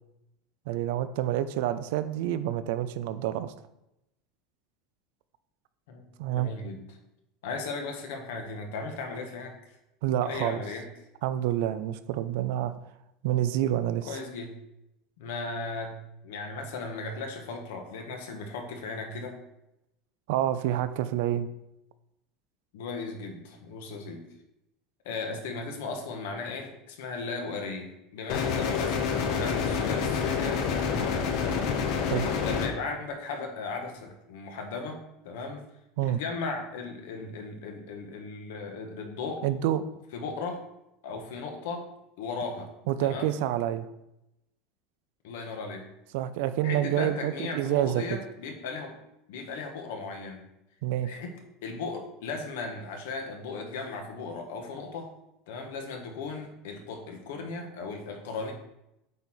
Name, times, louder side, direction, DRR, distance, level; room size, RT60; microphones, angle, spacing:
voice 1, 0.7-3.5 6.2-6.5 10.0-10.6 11.2-12.7 13.2-14.2 20.3-21.5 32.1-32.3 36.0-36.2 39.4-39.8 42.9-43.9 46.1-48.0 50.8-51.1, right 12 dB, 65° right, 12 dB, 0.5 m, -28 dB
voice 2, 5.9-7.0 7.4-9.6 10.2-10.9 14.0-14.6 15.2-19.4 22.7-24.2 25.0-31.7 32.4-35.0 35.2-35.6 36.1-39.4 40.1-40.6 41.0-41.9 42.2-42.7 43.0-43.4 45.2-45.9 46.6-48.9 49.3-50.5 51.0-51.3 51.6-55.1 55.5-58.5, left 4 dB, 90° left, 3 dB, 1.5 m, -36 dB
sound 1, 28.3-32.7, left 6 dB, 45° left, 0.9 m, -28 dB
8.3 x 4.1 x 4.5 m, 0.87 s
cardioid pair, 180°, 0 cm